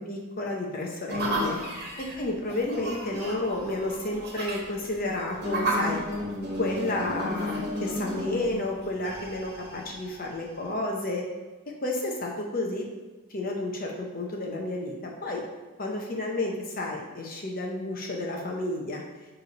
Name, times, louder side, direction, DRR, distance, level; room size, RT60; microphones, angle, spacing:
voice 1, 0.0-1.6 2.0-6.0 6.6-11.2 11.8-12.9 13.3-15.4 15.8-19.0, left 2 dB, 40° left, 0 dB, 0.8 m, -31 dB
sound 1, 1.1-10.7, equal, 45° right, 1.4 m, -33 dB
7.2 x 3.3 x 5.3 m, 1.3 s
head